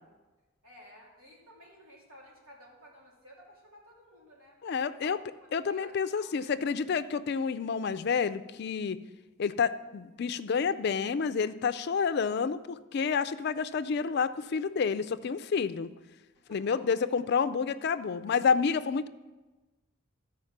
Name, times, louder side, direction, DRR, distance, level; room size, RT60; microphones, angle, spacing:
voice 1, 0.6-5.2 5.7-6.6 16.3-17.0, equal, 85° right, -3 dB, 2.9 m, -54 dB
voice 2, 4.6-5.2 5.5-9.0 9.4-15.9 16.5-19.1, left 6 dB, 50° left, 14 dB, 0.4 m, -29 dB
13.0 x 4.9 x 5.9 m, 1.2 s
head